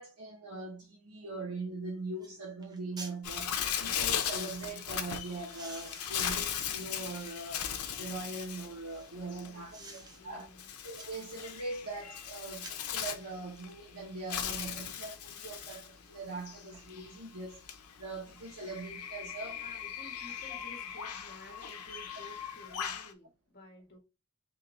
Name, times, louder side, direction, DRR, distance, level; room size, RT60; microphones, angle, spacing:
voice 1, 0.0-7.7 8.0-10.5 10.8-19.6 20.5-20.6, right 3 dB, 85° right, 1.0 m, -41 dB
sound 1, 1.7-1.8 2.2-2.3 2.6-3.2 3.9-4.7 5.3-7.6 8.1-9.2 9.7-10.2 10.6-11.9 12.5-12.9 13.5-13.8 14.4-14.8 15.5-15.7 16.0-16.8 17.2-17.3, right 2 dB, 20° right, 0.8 m, -53 dB
Bird, 3.2-23.1, left 8 dB, 90° left, 0.6 m, -38 dB
voice 2, 9.4-10.7 19.5-24.0, equal, 45° left, 1.4 m, -53 dB
3.7 x 2.9 x 3.0 m
head